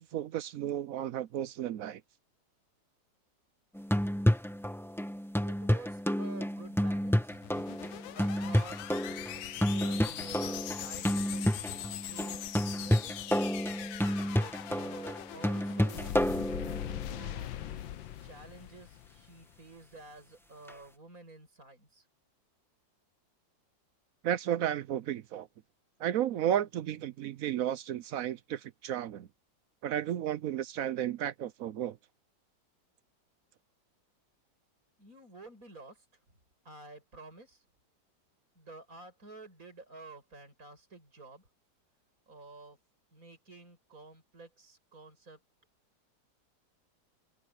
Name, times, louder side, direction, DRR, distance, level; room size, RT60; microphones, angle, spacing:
voice 1, 0.0-2.0 24.2-25.5 26.0-29.3 29.8-32.0, right 11 dB, 70° right, 0.8 m, -33 dB
sound 1, 3.8-17.1 20.7-20.8, equal, ahead, 0.6 m, -30 dB
voice 2, 5.4-7.4 8.1-13.2 14.2-22.1 35.0-36.1 36.6-37.6 38.5-41.4 42.3-42.8 43.1-45.4, right 3 dB, 45° right, 8.4 m, -51 dB
sound 2, 7.2-19.6, left 12 dB, 90° left, 1.5 m, -42 dB
omnidirectional pair, 2.0 m